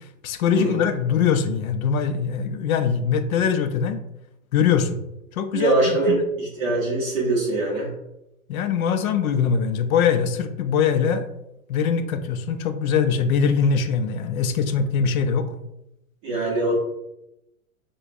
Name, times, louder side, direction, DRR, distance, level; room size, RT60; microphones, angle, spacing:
voice 1, 0.2-4.0 4.5-5.0 5.3-6.2 8.5-11.3 11.7-15.5, left 6 dB, 75° left, 9 dB, 0.5 m, -22 dB
voice 2, 5.5-7.9 16.2-16.7, right 2 dB, 15° right, -5 dB, 0.7 m, -23 dB
4.5 x 2.2 x 2.5 m, 0.86 s
supercardioid pair, 165°, 42 cm